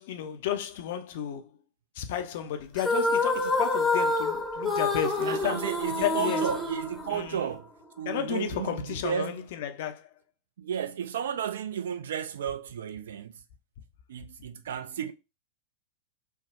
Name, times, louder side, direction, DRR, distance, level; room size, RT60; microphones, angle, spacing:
voice 1, 0.0-1.5 2.0-5.7 6.0-6.5 7.1-7.5 8.1-10.1, left 9 dB, 55° left, 0.4 m, -32 dB
sound 1, 2.8-7.6, left 2 dB, 10° left, 0.7 m, -28 dB
voice 2, 5.3-7.7 8.0-9.5 10.6-13.4 14.1-15.1, right 8 dB, 60° right, 0.3 m, -33 dB
3.2 x 2.0 x 2.4 m
figure-of-eight pair, 90°, 0 cm